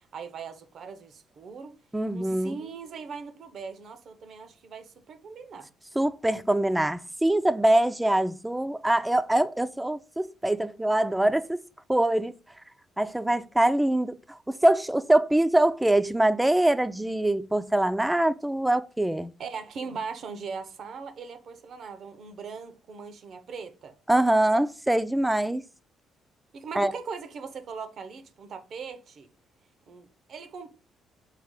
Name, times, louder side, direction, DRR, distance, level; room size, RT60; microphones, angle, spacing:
voice 1, 0.0-1.7 2.1-5.7 19.4-24.0 26.5-29.3 29.9-30.7, right 5 dB, 60° right, 0.6 m, -40 dB
voice 2, 1.9-2.5 6.0-11.6 11.9-12.3 13.0-19.3 24.1-25.6 26.8-26.9, right 1 dB, 10° right, 0.4 m, -24 dB
4.8 x 2.4 x 3.6 m
hypercardioid pair, 55°, 0 cm